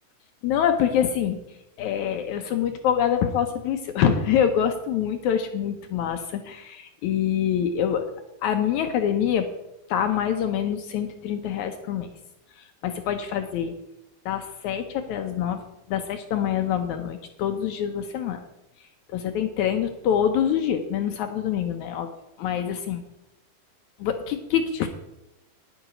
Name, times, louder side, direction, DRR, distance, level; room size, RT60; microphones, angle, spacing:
voice 1, 0.4-8.1 8.4-9.5 9.9-12.1 12.5-13.8 14.3-15.6 15.9-18.4 18.8-22.1 22.4-23.0 24.0-24.9, left 9 dB, 75° left, 7 dB, 1.8 m, -25 dB
10.5 x 9.3 x 5.0 m, 0.92 s
omnidirectional pair, 4.1 m